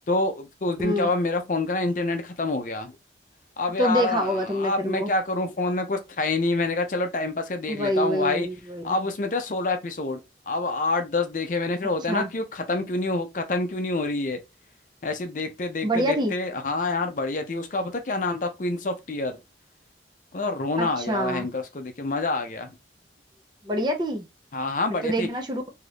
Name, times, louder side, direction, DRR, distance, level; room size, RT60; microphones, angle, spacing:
voice 1, 0.1-2.9 3.6-8.5 8.8-10.2 10.5-14.4 15.0-19.4 20.3-22.7 24.5-25.3, left 2 dB, 45° left, 0.5 m, -27 dB
voice 2, 0.8-1.1 3.8-5.1 7.7-9.0 12.1-12.3 15.8-16.4 20.8-21.5 23.6-24.3 24.9-25.6, equal, 25° right, 0.5 m, -26 dB
2.7 x 2.5 x 3.2 m
head